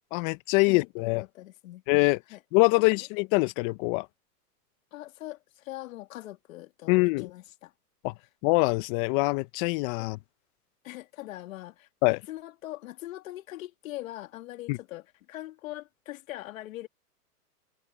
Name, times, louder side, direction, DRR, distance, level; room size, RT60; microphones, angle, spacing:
voice 1, 0.1-1.2 1.9-2.2 2.5-4.1 6.9-7.3 8.0-8.1 8.4-10.2 12.0-12.2 14.7-14.8, left 26 dB, 35° left, 0.9 m, -24 dB
voice 2, 0.7-1.8 2.3-2.4 2.8-3.1 4.9-7.7 10.0-10.2 10.8-16.9, left 16 dB, 55° left, 2.5 m, -42 dB
hypercardioid pair, 135°, 47 cm